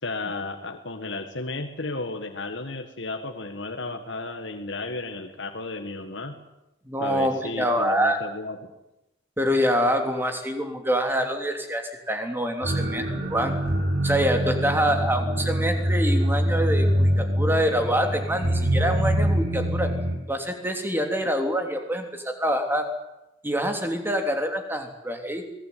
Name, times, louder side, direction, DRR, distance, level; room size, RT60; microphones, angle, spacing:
voice 1, 0.0-6.4 7.0-8.6, left 2 dB, 70° left, 4 dB, 1.9 m, -33 dB
voice 2, 6.8-8.2 9.4-13.0 13.3-13.6 14.0-19.9 20.3-22.9 23.4-25.4, equal, 10° right, 5 dB, 3.1 m, -25 dB
sound 1, 12.6-20.2, equal, 60° right, 5.9 m, -24 dB
23.5 x 19.0 x 9.4 m, 0.94 s
head